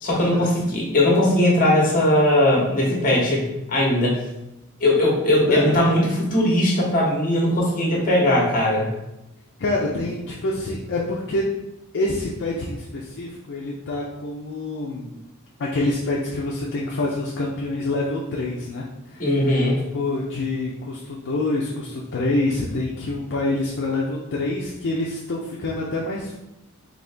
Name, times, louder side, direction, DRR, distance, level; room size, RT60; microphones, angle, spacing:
voice 1, 0.0-3.4 3.7-4.2 4.8-8.9 19.2-19.8, left 1 dB, 40° left, -2 dB, 1.2 m, -19 dB
voice 2, 9.6-11.5 11.9-15.1 15.6-19.6 19.9-26.4, left 2 dB, 55° left, -3 dB, 0.5 m, -26 dB
4.0 x 2.8 x 3.3 m, 0.91 s
head